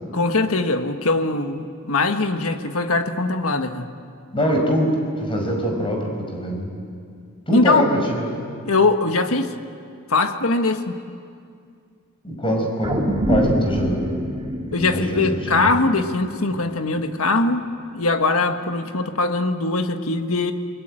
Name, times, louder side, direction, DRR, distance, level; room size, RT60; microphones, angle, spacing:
voice 1, 0.1-3.9 7.5-7.8 8.7-9.5 10.1-11.0 14.7-17.6 17.9-20.5, left 3 dB, 80° left, 7 dB, 1.5 m, -21 dB
voice 2, 4.3-6.7 7.5-8.3 12.2-13.0 13.3-14.1 14.8-15.7, equal, 25° left, 1 dB, 5.7 m, -23 dB
sound 1, 12.8-17.3 17.8-17.9, equal, 25° right, 2.8 m, -26 dB
29.0 x 21.0 x 9.0 m, 2.3 s
head